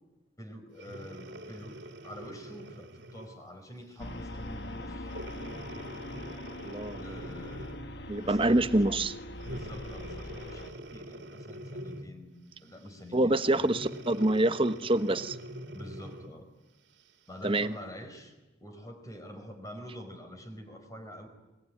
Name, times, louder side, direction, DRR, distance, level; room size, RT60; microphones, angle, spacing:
voice 1, 0.4-1.8 2.0-5.1 7.0-7.8 8.2-9.1 9.5-13.6 15.7-16.5 17.3-18.3 18.6-21.3, equal, 20° left, 6 dB, 4.9 m, -46 dB
Breathing, 0.8-3.4 4.0-4.2 5.1-8.0 9.4-12.2 13.6-16.4 17.0-17.1, right 1 dB, 90° right, 2.9 m, -44 dB
sound 1, 4.0-10.7, left 1 dB, 65° left, 1.7 m, -42 dB
voice 2, 6.6-7.0 8.1-9.1 13.1-15.4 17.4-17.7, right 1 dB, 30° right, 11 dB, 1.1 m, -26 dB
28.0 x 21.5 x 9.8 m, 1.1 s
head